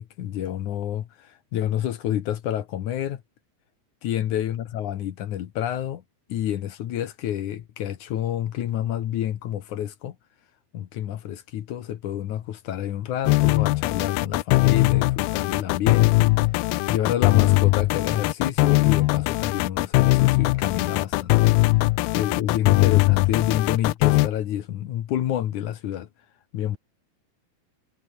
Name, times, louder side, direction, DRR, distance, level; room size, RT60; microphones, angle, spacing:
voice 1, 0.0-3.2 4.0-6.0 6.3-10.2 10.7-16.4 16.9-21.4 22.1-26.1 26.5-26.8, left 11 dB, 60° left, 2.3 m, -28 dB
sound 1, 13.3-24.3, left 20 dB, 80° left, 2.3 m, -20 dB
omnidirectional pair, 4.7 m